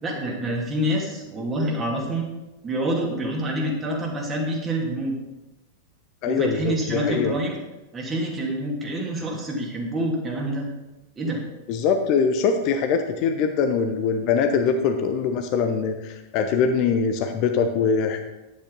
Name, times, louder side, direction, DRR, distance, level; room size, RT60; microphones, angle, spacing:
voice 1, 0.0-2.2 2.6-5.2 6.2-7.6 7.9-10.7 11.2-11.4, right 1 dB, 20° right, -1 dB, 2.6 m, -27 dB
voice 2, 6.2-7.3 11.7-18.2, left 6 dB, 40° left, 6 dB, 0.9 m, -23 dB
10.0 x 8.6 x 4.1 m, 1.0 s
figure-of-eight pair, 90°, 0 cm